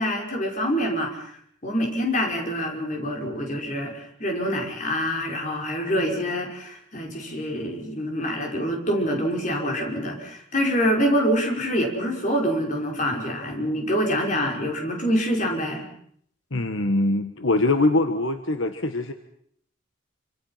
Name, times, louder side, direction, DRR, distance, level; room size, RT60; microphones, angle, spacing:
voice 1, 0.0-15.8, equal, 40° left, 1 dB, 5.7 m, -26 dB
voice 2, 16.5-19.1, left 2 dB, 70° left, 8 dB, 1.5 m, -23 dB
27.0 x 26.0 x 5.8 m, 0.65 s
head